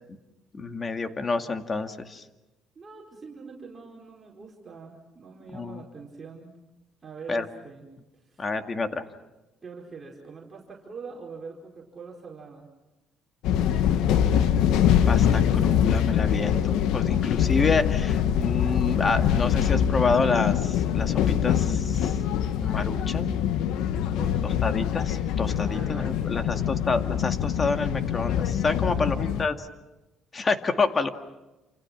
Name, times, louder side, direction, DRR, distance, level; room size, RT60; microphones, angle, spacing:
voice 1, 0.5-2.2 5.5-5.8 7.3-7.5 8.4-9.0 15.1-22.2 22.6-23.4 24.6-29.6 30.3-31.1, left 4 dB, 30° left, 7 dB, 2.1 m, -28 dB
voice 2, 2.7-6.5 7.0-7.9 8.1-8.5 9.6-12.7 24.1-24.6 25.6-26.8 28.9-29.2, right 5 dB, 30° right, -2 dB, 4.7 m, -44 dB
sound 1, 13.4-29.4, left 9 dB, 85° left, 1.4 m, -24 dB
29.0 x 28.0 x 6.1 m, 1.0 s
cardioid pair, 115°, 0 cm